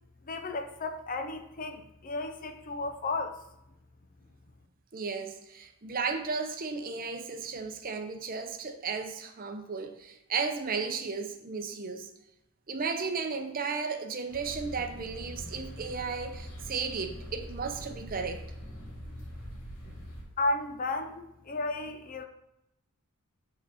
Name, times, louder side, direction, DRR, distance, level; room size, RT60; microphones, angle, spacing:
voice 1, 0.3-3.4 20.4-22.2, left 2 dB, 40° left, 6 dB, 0.6 m, -33 dB
voice 2, 4.9-12.1 12.7-18.4, right 5 dB, 40° right, 6 dB, 0.7 m, -34 dB
sound 1, 14.3-20.2, equal, 80° left, 2.5 m, -43 dB
8.7 x 3.9 x 4.2 m, 0.85 s
head